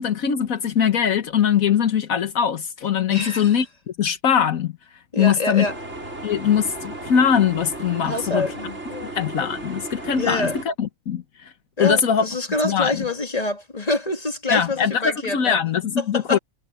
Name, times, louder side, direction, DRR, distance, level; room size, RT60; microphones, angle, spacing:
voice 1, 0.0-3.6 4.0-4.7 5.2-5.7 6.2-8.5 9.1-11.5 11.8-12.3 12.6-13.0 14.5-16.4, left 8 dB, 80° left, 1.5 m, -21 dB
voice 2, 3.1-3.6 5.1-5.8 8.0-9.1 10.2-10.6 11.8-15.6 16.0-16.4, left 2 dB, 25° left, 2.9 m, -26 dB
sound 1, 5.6-10.6, right 2 dB, 55° right, 6.0 m, -35 dB
omnidirectional pair, 1.4 m